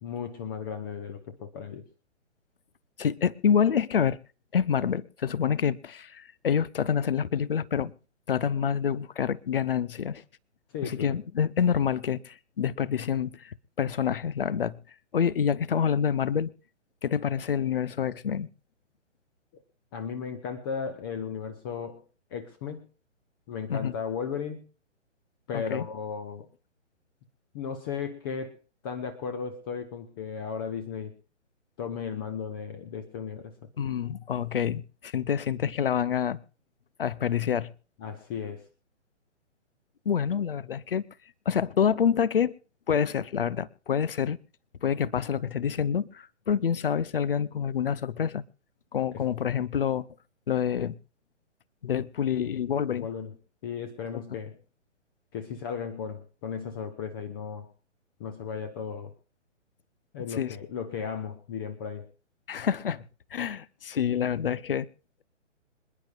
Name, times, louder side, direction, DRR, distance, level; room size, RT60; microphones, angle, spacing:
voice 1, 0.0-1.8 10.7-11.2 19.9-22.0 22.3-22.8 23.5-24.6 25.5-26.5 27.5-28.6 28.8-31.1 31.8-33.5 38.0-38.7 52.9-53.3 53.6-54.6 55.3-57.7 58.2-59.1 60.1-62.1, left 6 dB, 20° left, 0.9 m, -35 dB
voice 2, 3.0-4.2 4.5-7.9 8.3-10.2 10.8-14.8 15.1-16.5 17.0-18.5 23.7-23.9 25.5-25.9 33.8-36.4 37.0-37.7 40.0-41.0 41.5-42.5 42.9-44.4 44.8-48.4 48.9-50.0 50.5-51.0 51.8-53.1 60.3-60.6 62.5-63.0 63.3-64.9, left 8 dB, 50° left, 0.9 m, -27 dB
26.5 x 10.5 x 2.4 m
figure-of-eight pair, 130°, 37 cm